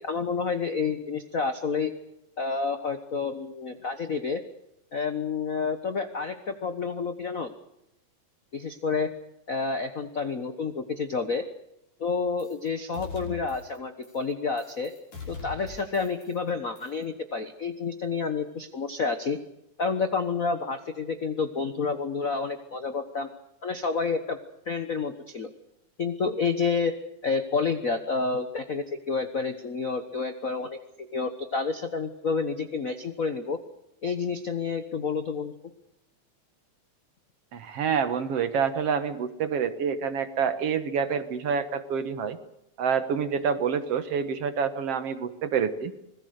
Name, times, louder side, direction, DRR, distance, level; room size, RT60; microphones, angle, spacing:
voice 1, 0.0-1.9 2.4-4.4 4.9-7.5 8.5-9.1 9.5-11.4 12.0-14.9 15.3-19.4 19.8-23.3 23.6-24.4 24.7-25.5 26.0-26.9 27.2-33.6 34.0-35.5, left 5 dB, 70° left, 9 dB, 0.8 m, -29 dB
sound 1, 12.4-12.7 12.9-13.8 14.0-14.3 14.6-16.5 16.8-17.0, left 4 dB, 85° left, 7.8 m, -41 dB
voice 2, 37.5-42.4 42.8-45.9, right 6 dB, 60° right, 11 dB, 2.1 m, -27 dB
26.0 x 21.0 x 6.6 m, 0.83 s
omnidirectional pair, 3.5 m